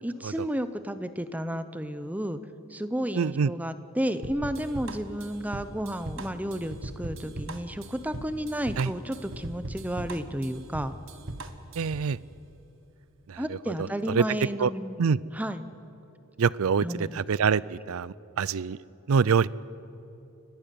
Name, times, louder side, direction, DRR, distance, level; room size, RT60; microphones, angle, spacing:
voice 1, 0.0-2.4 2.7-10.9 13.4-15.0 15.3-15.7 16.8-17.2, equal, 5° right, 11 dB, 0.7 m, -32 dB
voice 2, 3.1-3.5 8.8-8.9 11.8-12.2 13.3-13.4 14.1-14.2 14.6-14.7 15.0-15.2 16.4-18.8 19.1-19.5, right 6 dB, 75° right, 21 dB, 0.5 m, -25 dB
sound 1, 4.2-12.1, right 2 dB, 60° right, 1.3 m, -39 dB
sound 2, 5.4-5.5 6.3-6.4 7.2-7.4 8.1-8.3 9.1-9.2 10.0-10.1, equal, 30° left, 4.2 m, -49 dB
29.5 x 12.0 x 9.3 m, 2.9 s
head